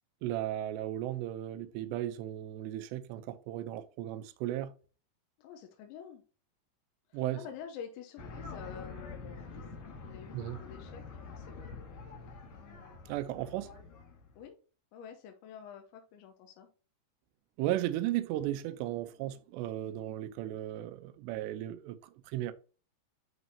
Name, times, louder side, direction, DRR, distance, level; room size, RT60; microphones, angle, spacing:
voice 1, 0.2-4.7 7.1-7.4 10.3-10.6 13.1-13.7 17.6-22.5, right 13 dB, 85° right, 2.7 m, -35 dB
voice 2, 5.4-6.2 7.1-9.7 10.0-11.7 14.4-14.6 14.9-16.7, left 8 dB, 80° left, 3.2 m, -48 dB
sound 1, 8.2-14.5, left 4 dB, 50° left, 3.1 m, -46 dB
11.0 x 4.2 x 2.8 m
omnidirectional pair, 5.3 m